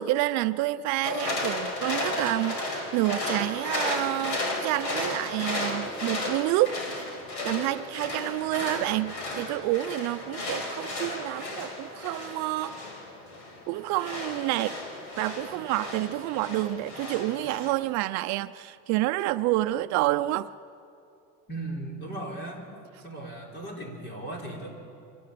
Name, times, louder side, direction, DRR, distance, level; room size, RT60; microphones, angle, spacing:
voice 1, 0.0-6.8 7.4-12.8 13.7-14.8 15.2-20.5, right 16 dB, 55° right, 11 dB, 0.6 m, -28 dB
sound 1, 1.0-17.7, left 2 dB, 70° left, 5.5 m, -34 dB
voice 2, 21.5-22.7 23.0-24.7, right 2 dB, 30° left, 0 dB, 4.0 m, -37 dB
25.5 x 19.0 x 8.4 m, 2.6 s
cardioid pair, 180°, 32 cm